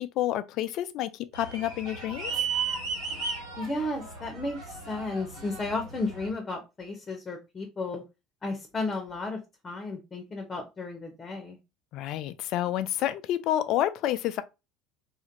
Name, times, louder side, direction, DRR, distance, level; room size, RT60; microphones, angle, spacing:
voice 1, 0.0-2.3 11.9-14.4, left 13 dB, 60° left, 0.3 m, -29 dB
sound 1, 1.3-6.3, right 5 dB, 70° right, 1.6 m, -35 dB
voice 2, 3.6-8.0 8.4-11.6, left 2 dB, 25° left, 0.8 m, -34 dB
2.8 x 2.5 x 2.6 m
hypercardioid pair, 75°, 0 cm